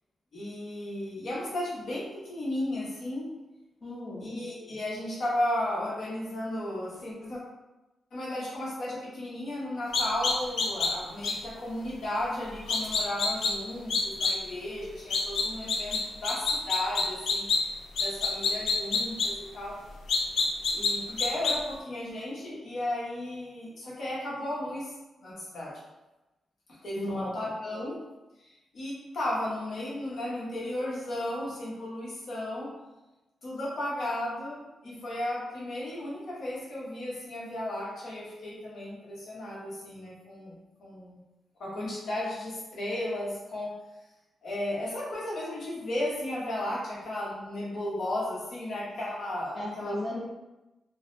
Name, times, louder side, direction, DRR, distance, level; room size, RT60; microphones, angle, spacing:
voice 1, 0.3-3.3 4.2-7.4 8.1-17.4 18.0-19.8 20.7-24.9 25.2-25.7 26.8-28.0 28.4-32.7 33.4-41.2 41.6-43.7 44.4-50.0, left 1 dB, 60° left, -7 dB, 1.1 m, -34 dB
voice 2, 3.8-4.2 27.0-27.3 49.5-50.2, left 1 dB, 25° left, -9 dB, 0.7 m, -35 dB
sound 1, 9.9-10.9 11.2-11.3 12.7-13.5 13.9-14.3 15.1-17.6 18.0-19.3 20.1-20.9 21.2-21.5, left 4 dB, 90° left, 0.4 m, -26 dB
3.7 x 2.0 x 2.7 m, 1.0 s
wide cardioid pair, 170°, 0 cm